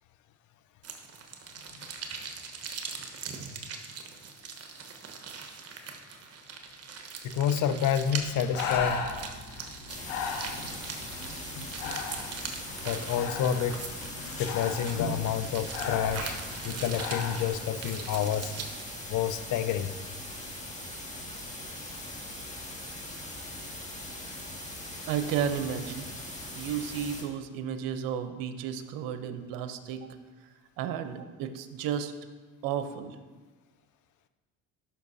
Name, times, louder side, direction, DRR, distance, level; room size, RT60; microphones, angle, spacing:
sound 1, 0.8-18.8, right 5 dB, 40° right, 1.2 m, -42 dB
voice 1, 7.2-9.1 12.8-13.9 14.4-16.4 16.6-18.5 19.1-19.9, left 9 dB, 55° left, 10 dB, 0.7 m, -29 dB
Breathing, 8.0-17.5, left 5 dB, 90° left, 1.0 m, -37 dB
sound 2, 9.9-27.2, left 1 dB, 20° left, 1.9 m, -41 dB
voice 2, 25.1-26.1 26.5-30.1 30.8-32.1 32.6-33.2, right 8 dB, 70° right, 9 dB, 0.8 m, -33 dB
12.5 x 5.9 x 2.7 m, 1.3 s
supercardioid pair, 75°, 36 cm